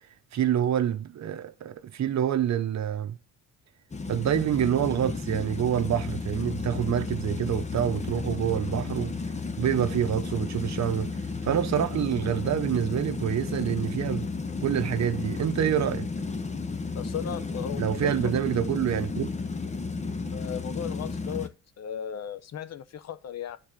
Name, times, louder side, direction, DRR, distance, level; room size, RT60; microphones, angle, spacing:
voice 1, 0.3-3.2 4.1-9.1 9.6-11.2 11.4-14.3 14.6-16.1 17.8-19.3, right 10 dB, 55° right, 1.1 m, -27 dB
sound 1, 3.9-21.5, left 4 dB, 20° left, 1.0 m, -33 dB
voice 2, 16.9-18.3 20.3-23.6, left 8 dB, 50° left, 0.9 m, -36 dB
9.4 x 4.4 x 6.8 m
cardioid pair, 100°, 34 cm